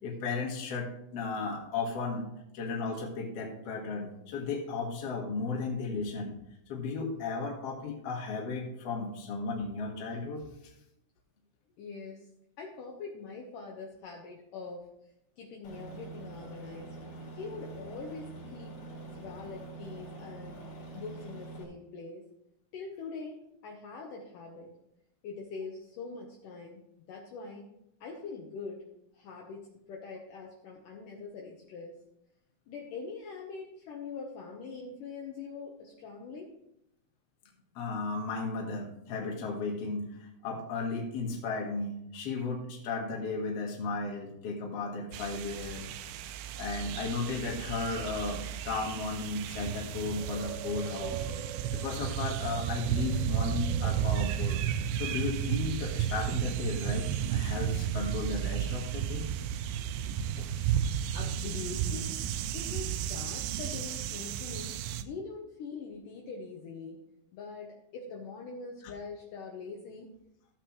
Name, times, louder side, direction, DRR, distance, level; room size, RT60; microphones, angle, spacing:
voice 1, 0.0-6.4 6.7-10.4 37.8-46.2 46.6-51.3 51.7-54.6 54.9-59.3 60.1-60.8, left 4 dB, 50° left, -1 dB, 2.3 m, -35 dB
voice 2, 11.8-12.3 12.6-14.9 15.4-16.9 17.3-18.7 19.2-20.6 20.9-22.2 22.7-24.7 25.2-26.8 27.1-27.7 28.0-28.8 29.1-31.9 32.7-36.5 59.8-60.1 61.1-62.2 62.5-67.0 67.3-70.1, left 4 dB, 70° left, -1 dB, 2.3 m, -43 dB
Aircraft, 15.6-21.6, right 3 dB, 90° left, 4.7 m, -45 dB
sound 1, 45.1-65.0, right 10 dB, 80° right, 2.3 m, -33 dB
14.5 x 7.9 x 3.2 m, 0.82 s
omnidirectional pair, 4.4 m